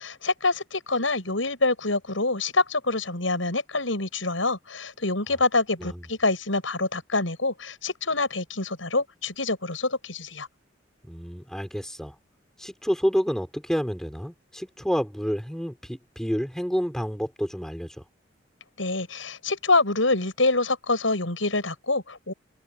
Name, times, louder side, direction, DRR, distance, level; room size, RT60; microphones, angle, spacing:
voice 1, 0.0-10.5 18.8-22.3, left 3 dB, 85° left, 7.6 m, -26 dB
voice 2, 11.0-12.2 12.6-18.0, equal, 5° left, 5.3 m, -29 dB
head